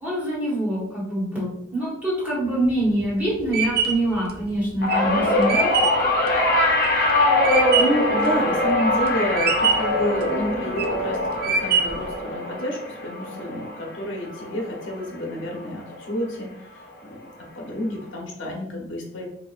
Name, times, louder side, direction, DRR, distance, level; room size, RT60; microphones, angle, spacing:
voice 1, 0.0-5.7, right 1 dB, 10° right, -7 dB, 1.4 m, -25 dB
sound 1, 2.6-8.1 8.5-9.1 9.4-10.0 10.5-11.0 11.4-12.1, right 5 dB, 50° right, 0.4 m, -24 dB
sound 2, 4.8-15.3 15.6-16.0 17.1-17.2, left 1 dB, 50° left, 0.7 m, -23 dB
voice 2, 7.7-16.5 16.7-17.3 17.5-19.3, equal, 85° left, -1 dB, 1.0 m, -29 dB
4.2 x 3.0 x 2.5 m, 0.79 s
head